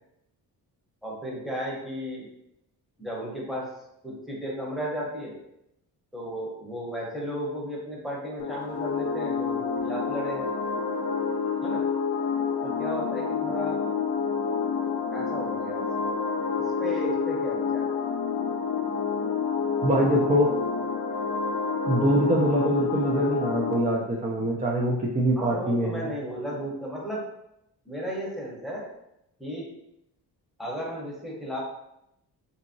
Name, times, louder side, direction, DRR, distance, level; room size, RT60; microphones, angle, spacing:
voice 1, 1.0-2.3 3.0-3.7 4.0-5.3 6.1-10.5 11.6-11.8 12.6-13.9 15.1-16.1 16.8-17.9 25.3-27.2 27.8-28.9 29.4-29.7 30.6-31.6, equal, ahead, -4 dB, 0.8 m, -34 dB
sound 1, 8.4-23.8, left 5 dB, 75° left, 0.5 m, -28 dB
voice 2, 19.8-20.5 21.9-26.1, right 1 dB, 20° right, -2 dB, 0.3 m, -24 dB
2.8 x 2.7 x 2.6 m, 0.82 s
cardioid pair, 120°, 38 cm